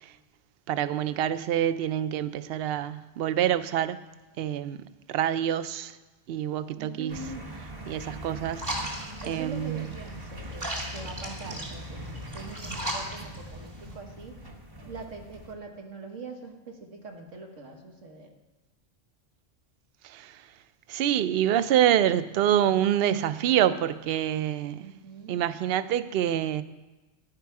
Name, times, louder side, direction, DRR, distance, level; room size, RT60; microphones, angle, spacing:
voice 1, 0.7-4.0 4.4-4.8 5.1-6.0 6.3-7.2 7.9-8.6 9.3-9.9 20.0-20.4 20.9-24.9 25.3-26.6, right 10 dB, 65° right, 0.7 m, -26 dB
voice 2, 6.8-7.6 9.2-14.4 14.9-18.3 24.8-25.5, right 3 dB, 85° right, 1.8 m, -43 dB
sound 1, 7.1-15.5, equal, 20° right, 0.8 m, -42 dB
sound 2, 8.5-13.9, equal, 40° right, 2.3 m, -37 dB
11.5 x 10.5 x 4.7 m
omnidirectional pair, 1.3 m